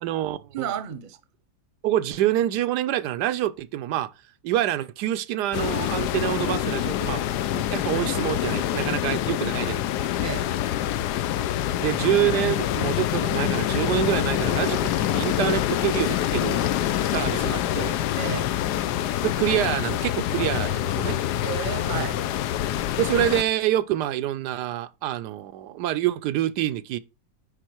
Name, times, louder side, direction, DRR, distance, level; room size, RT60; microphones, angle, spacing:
voice 1, 0.0-0.7 1.8-4.1 4.4-10.1 11.8-16.6 17.1-18.0 19.2-21.2 23.0-27.0, right 13 dB, 80° right, 1.2 m, -26 dB
voice 2, 0.5-1.2 10.2-10.5 18.2-18.6 21.4-22.2, right 8 dB, 40° right, 0.8 m, -32 dB
sound 1, 5.5-23.4, left 12 dB, 80° left, 1.2 m, -26 dB
sound 2, 8.3-8.4 8.7-8.9 9.1-9.3 14.1-17.2, left 5 dB, 40° left, 0.8 m, -39 dB
9.9 x 4.1 x 4.5 m
omnidirectional pair, 1.8 m